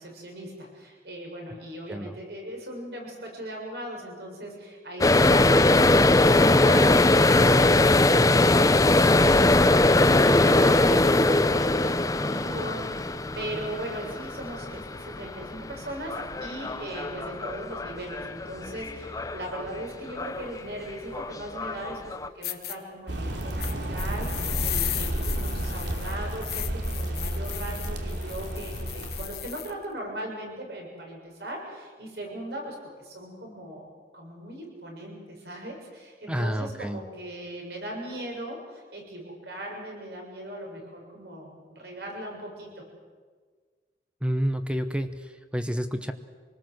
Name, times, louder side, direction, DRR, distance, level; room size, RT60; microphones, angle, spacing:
voice 1, 0.0-33.9 34.1-42.9, right 1 dB, 65° right, 0 dB, 6.9 m, -39 dB
voice 2, 1.9-2.2 36.3-37.0 44.2-46.1, equal, 5° right, 9 dB, 0.9 m, -29 dB
sound 1, 5.0-19.8 20.1-20.6 20.9-22.3, left 2 dB, 20° left, 0.6 m, -21 dB
sound 2, 22.0-22.1 22.4-22.8 23.6-29.7, left 14 dB, 60° left, 1.3 m, -36 dB
sound 3, 23.1-29.3, right 1 dB, 80° right, 2.9 m, -31 dB
26.0 x 19.5 x 7.8 m, 1.5 s
head